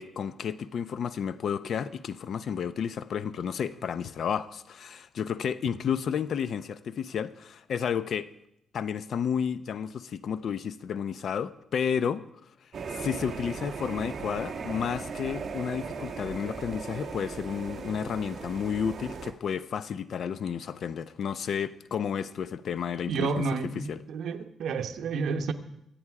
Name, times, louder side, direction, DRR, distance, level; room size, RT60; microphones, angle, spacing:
voice 1, 0.0-8.3 8.7-12.2 12.9-23.5 23.8-24.0, left 7 dB, 55° left, 0.6 m, -31 dB
sound 1, 12.7-19.3, right 5 dB, 45° right, 1.7 m, -38 dB
voice 2, 23.1-25.5, right 4 dB, 70° right, 1.0 m, -30 dB
24.0 x 8.8 x 4.8 m
cardioid pair, 145°, 0 cm